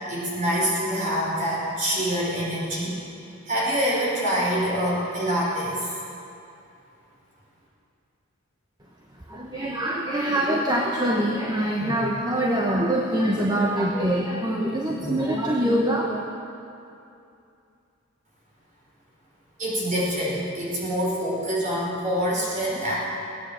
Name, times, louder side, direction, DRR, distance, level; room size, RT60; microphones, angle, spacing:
voice 1, 0.1-3.0 3.5-5.9 19.6-22.9, equal, 40° right, -5 dB, 4.8 m, -25 dB
voice 2, 9.3-16.2, right 1 dB, 20° right, -1 dB, 1.0 m, -24 dB
17.5 x 9.6 x 7.5 m, 2.6 s
head